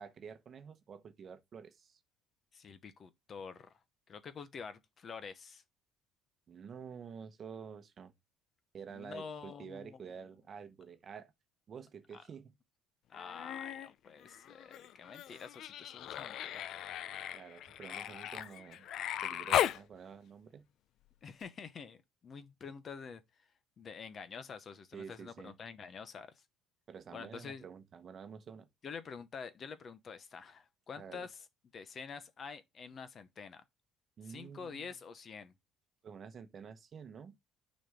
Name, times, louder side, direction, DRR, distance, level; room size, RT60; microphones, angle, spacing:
voice 1, 0.0-2.0 6.5-8.1 8.7-11.3 11.7-12.5 17.3-18.9 19.2-20.6 24.9-25.5 26.9-28.7 31.0-31.3 34.2-34.9 36.0-37.3, right 6 dB, 35° right, 1.0 m, -49 dB
voice 2, 2.5-3.7 4.1-5.6 8.9-10.1 12.1-12.2 13.1-16.8 21.2-23.5 23.8-26.4 27.1-27.6 28.8-31.4 31.7-33.6 34.2-35.5, left 5 dB, 35° left, 0.8 m, -47 dB
Human voice, 13.1-13.9 14.2-19.8 21.4-21.5, left 11 dB, 55° left, 0.5 m, -37 dB
6.2 x 4.2 x 3.5 m
cardioid pair, 130°, 0 cm